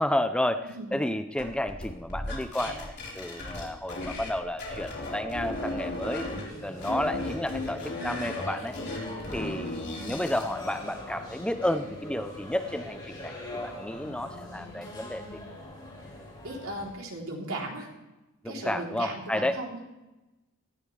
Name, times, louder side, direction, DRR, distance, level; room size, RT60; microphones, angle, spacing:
voice 1, 0.0-6.3 6.6-8.7 9.3-15.4 18.4-19.6, left 1 dB, 5° left, 8 dB, 0.6 m, -31 dB
voice 2, 0.6-1.0 9.5-10.1 14.3-14.5 16.4-17.9 18.4-19.8, right 2 dB, 75° right, -1 dB, 3.4 m, -37 dB
sound 1, 1.4-4.3 4.6-6.4 6.8-10.5, left 1 dB, 50° left, 4.0 m, -35 dB
sound 2, 6.2-16.9, left 1 dB, 20° left, 5.5 m, -42 dB
18.5 x 14.5 x 3.3 m, 1.0 s
head